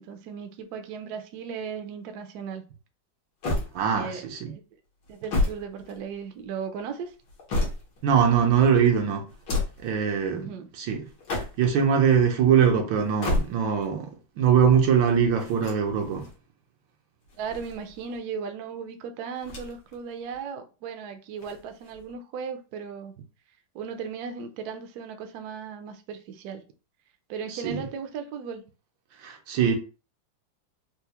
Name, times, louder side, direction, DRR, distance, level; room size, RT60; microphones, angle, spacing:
voice 1, 0.0-2.6 3.9-4.6 5.1-7.1 10.3-10.7 17.3-23.1 23.7-26.6 27.3-28.6, right 6 dB, 70° right, 1.0 m, -36 dB
sound 1, 3.4-4.2 5.0-6.4 7.1-8.1 9.3-9.9 11.1-11.8 13.0-13.9 15.4-16.3 17.2-18.2 19.4-20.0 20.3-20.4 21.4-22.1, left 2 dB, 80° left, 1.8 m, -31 dB
voice 2, 3.7-4.5 8.0-9.2 9.8-10.5 10.8-11.0 11.4-16.3 27.5-27.8 29.2-29.8, right 7 dB, 85° right, 1.5 m, -22 dB
4.4 x 2.1 x 2.8 m
omnidirectional pair, 2.0 m